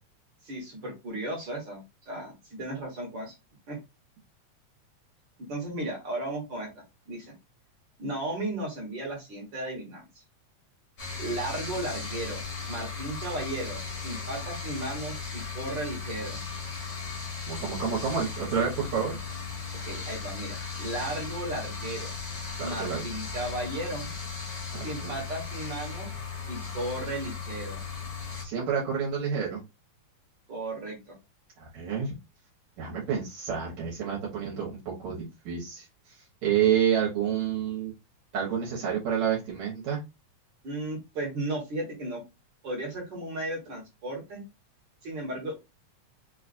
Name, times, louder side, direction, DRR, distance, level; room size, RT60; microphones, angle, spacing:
voice 1, 0.4-3.3 3.7-3.8 5.4-6.7 7.1-7.3 8.0-10.0 11.2-16.4 19.8-22.1 22.6-24.1 24.8-26.2 26.5-27.8 30.5-31.0 40.6-42.2 42.6-44.4 45.0-45.6, right 1 dB, 50° right, -1 dB, 1.6 m, -35 dB
sound 1, 11.0-28.4, left 5 dB, 40° left, 1.4 m, -37 dB
voice 2, 17.5-19.2 22.6-23.0 24.7-25.1 28.4-29.6 31.6-32.1 32.8-35.9 36.4-37.9 38.3-40.0, right 8 dB, 75° right, -3 dB, 2.3 m, -29 dB
5.0 x 2.4 x 2.5 m, 0.24 s
omnidirectional pair, 3.4 m